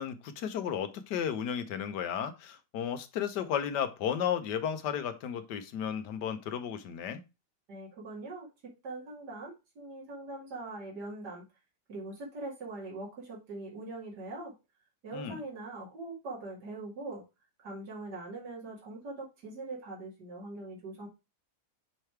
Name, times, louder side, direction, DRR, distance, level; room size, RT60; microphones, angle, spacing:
voice 1, 0.0-7.2 15.1-15.4, left 8 dB, 85° left, 1.4 m, -34 dB
voice 2, 7.7-11.4 11.9-14.5 15.0-17.2 17.6-21.1, right 2 dB, 75° right, 2.7 m, -42 dB
6.7 x 3.3 x 4.4 m
omnidirectional pair, 1.8 m